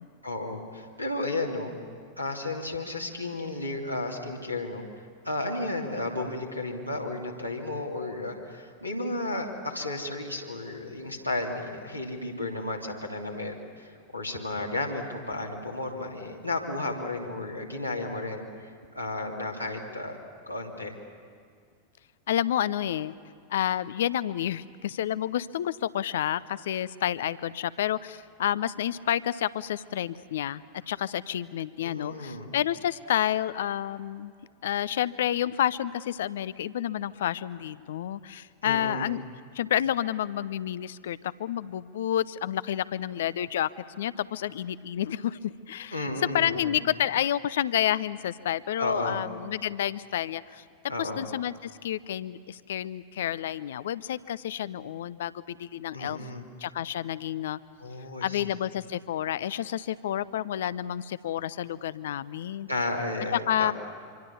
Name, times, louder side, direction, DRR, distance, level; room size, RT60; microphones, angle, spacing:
voice 1, 0.2-1.7 2.2-4.8 5.2-20.2 20.5-20.9 31.8-32.5 38.6-39.1 45.9-46.8 48.8-49.2 50.9-51.2 55.9-56.4 57.8-58.6 62.7-63.7, left 2 dB, 90° left, -2 dB, 2.8 m, -33 dB
voice 2, 22.3-23.1 23.5-34.3 34.6-39.2 39.5-43.7 44.0-46.1 46.3-50.6 51.0-56.2 56.6-57.6 58.2-62.7 63.3-63.7, left 11 dB, 60° left, 18 dB, 0.6 m, -30 dB
25.5 x 25.0 x 7.0 m, 2.1 s
figure-of-eight pair, 90°, 0 cm